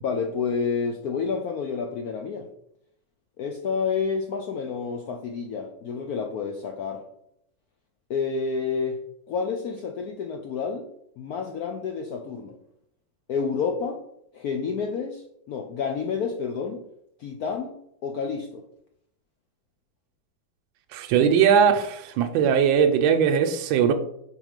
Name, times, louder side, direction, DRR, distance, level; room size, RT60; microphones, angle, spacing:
voice 1, 0.0-2.5 3.4-7.1 8.1-9.0 9.3-10.9 11.2-12.6 13.3-14.0 14.3-16.8 17.2-18.6, left 5 dB, 75° left, 4 dB, 0.8 m, -29 dB
voice 2, 20.9-23.9, right 7 dB, 85° right, 6 dB, 1.3 m, -20 dB
4.8 x 3.8 x 5.1 m, 0.75 s
omnidirectional pair, 2.1 m